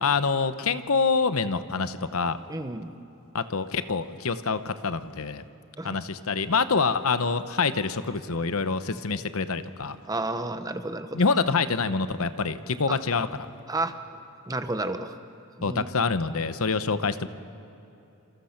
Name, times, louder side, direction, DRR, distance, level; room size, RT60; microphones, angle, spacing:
voice 1, 0.0-2.4 3.3-5.4 5.8-10.0 11.1-13.5 15.6-17.3, left 4 dB, 70° left, 12 dB, 0.9 m, -26 dB
voice 2, 2.5-2.9 5.8-6.0 10.1-11.2 12.9-13.0 13.7-14.0 14.5-15.1 15.6-15.9, right 2 dB, 15° right, 9 dB, 1.0 m, -31 dB
28.0 x 27.0 x 5.9 m, 3.0 s
head